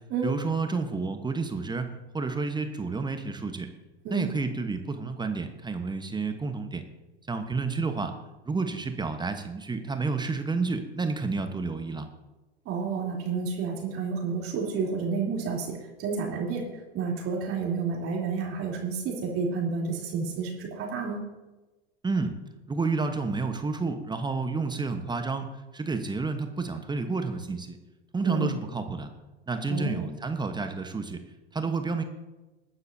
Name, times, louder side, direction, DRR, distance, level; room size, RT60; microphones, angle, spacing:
voice 1, 0.2-1.9 2.1-3.7 4.1-6.8 7.3-8.1 8.4-12.1 22.0-22.3 22.7-25.5 25.7-27.8 28.1-29.1 29.5-31.2 31.5-32.0, right 4 dB, 15° right, 7 dB, 1.1 m, -30 dB
voice 2, 12.6-16.6 16.9-21.2 28.2-28.4 29.7-30.0, right 5 dB, 45° right, -1 dB, 3.3 m, -30 dB
21.5 x 9.6 x 2.7 m, 1.1 s
hypercardioid pair, 90°, 32 cm